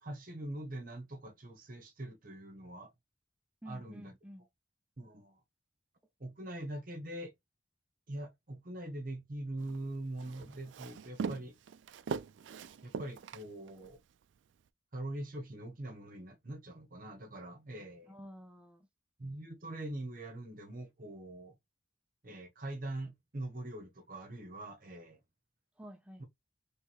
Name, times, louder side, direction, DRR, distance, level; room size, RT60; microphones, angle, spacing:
voice 1, 0.0-2.9 3.6-4.1 5.0-5.4 6.2-7.3 8.1-11.5 12.8-14.0 14.9-18.1 19.2-21.5 22.2-25.2 26.2-26.3, right 1 dB, 45° right, 0.9 m, -43 dB
voice 2, 3.6-4.5 18.1-18.9 25.8-26.2, equal, 5° right, 0.4 m, -50 dB
Walk footsteps, 9.6-14.0, right 5 dB, 75° right, 0.3 m, -41 dB
3.2 x 3.0 x 4.4 m
head